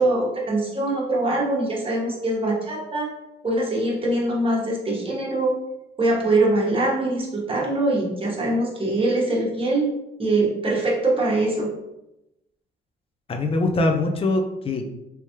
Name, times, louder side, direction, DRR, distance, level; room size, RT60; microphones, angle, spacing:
voice 1, 0.0-3.1 3.4-5.5 6.0-9.9 10.2-11.7, right 2 dB, 25° right, -3 dB, 1.2 m, -23 dB
voice 2, 13.3-14.9, left 2 dB, 30° left, 4 dB, 0.5 m, -23 dB
3.4 x 3.1 x 2.8 m, 0.91 s
cardioid pair, 90°, 20 cm